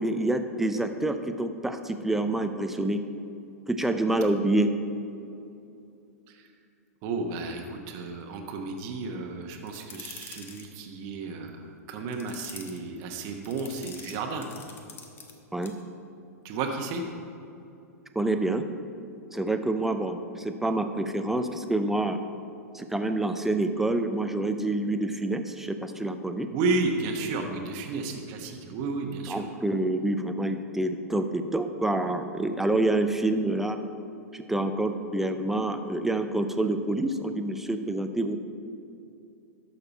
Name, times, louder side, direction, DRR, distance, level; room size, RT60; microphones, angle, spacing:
voice 1, 0.0-3.0 3.7-4.7 15.5-15.7 18.2-18.6 19.3-22.2 22.7-26.5 29.3-33.8 34.3-38.4, right 2 dB, 5° right, 7 dB, 0.6 m, -27 dB
voice 2, 7.0-14.5 16.4-17.0 26.5-29.5, right 3 dB, 45° right, 3 dB, 1.1 m, -32 dB
sound 1, 9.7-10.7 12.1-12.8 13.4-15.3 15.6-15.8, left 5 dB, 25° left, 1.1 m, -45 dB
11.5 x 6.6 x 4.2 m, 2.7 s
hypercardioid pair, 110°, 8 cm